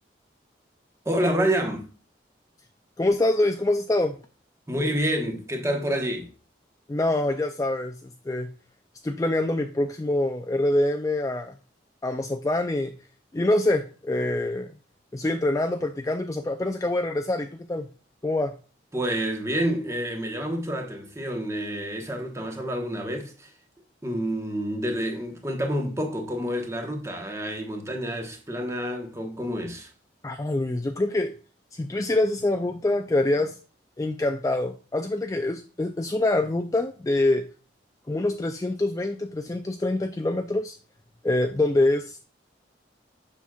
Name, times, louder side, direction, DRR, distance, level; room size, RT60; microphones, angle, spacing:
voice 1, 1.0-1.9 4.7-6.3 18.9-23.5 24.0-29.9, equal, 15° right, 1.1 m, -28 dB
voice 2, 3.0-4.2 6.9-8.5 9.0-11.5 12.0-12.9 13.3-14.7 15.1-17.9 18.2-18.5 30.2-31.3 31.7-33.6 34.0-37.4 38.1-40.8 41.2-42.2, left 2 dB, 20° left, 0.3 m, -25 dB
7.0 x 5.9 x 2.3 m
head